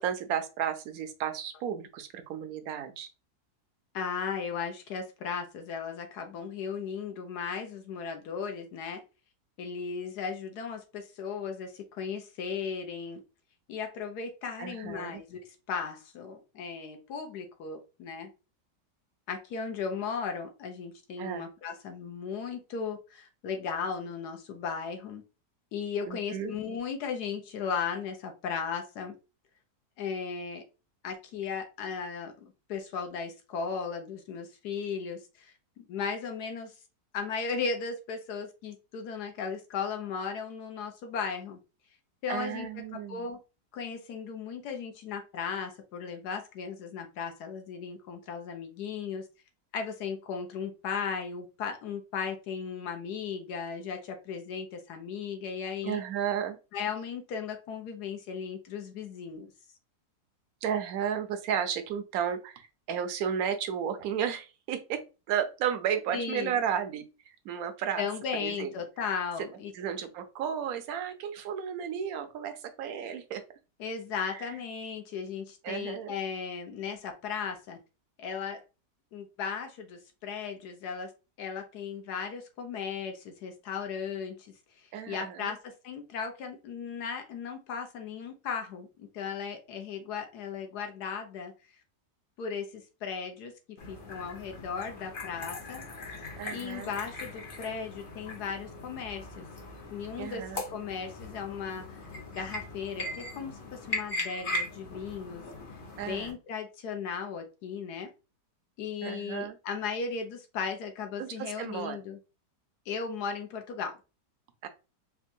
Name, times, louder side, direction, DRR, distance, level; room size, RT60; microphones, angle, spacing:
voice 1, 0.0-3.1 14.6-15.2 21.2-21.5 26.1-26.5 42.3-43.3 55.8-56.6 60.6-68.1 68.3-68.7 69.7-73.4 74.2-74.5 75.6-76.1 84.9-85.5 96.4-96.9 100.2-100.6 106.0-106.4 109.0-109.6 111.2-112.0 114.6-114.7, right 8 dB, 70° right, 7 dB, 1.0 m, -33 dB
voice 2, 3.9-9.0 9.6-13.2 13.7-15.4 15.7-18.3 19.3-25.2 25.7-29.1 30.0-30.6 31.0-36.7 37.1-41.6 42.2-42.7 43.1-43.4 43.7-49.3 49.7-56.0 56.7-59.5 66.1-66.6 68.0-69.7 73.8-77.8 78.2-78.6 79.1-81.1 81.4-84.5 85.1-85.6 85.8-91.5 92.4-93.5 93.9-95.8 96.5-99.4 99.9-102.0 102.3-105.4 106.1-108.1 108.8-112.2 112.9-113.9, left 6 dB, 75° left, 5 dB, 1.3 m, -36 dB
sound 1, 93.8-106.3, left 1 dB, 45° left, 0.7 m, -39 dB
4.3 x 2.2 x 2.6 m, 0.30 s
omnidirectional pair, 1.8 m